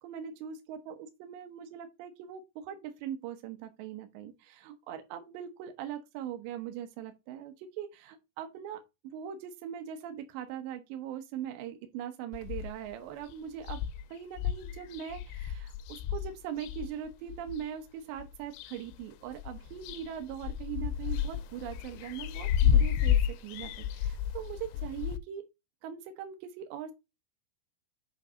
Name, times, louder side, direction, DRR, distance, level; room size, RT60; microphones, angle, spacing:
voice 1, 0.0-8.8 9.1-13.8 14.1-23.2 23.4-25.4 25.8-26.9, right 9 dB, 75° right, 2.9 m, -41 dB
sound 1, 12.3-12.9 13.3-13.4 13.6-17.7 18.2-19.0 19.3-25.2, left 9 dB, 85° left, 3.1 m, -31 dB
8.4 x 4.0 x 5.1 m
omnidirectional pair, 5.7 m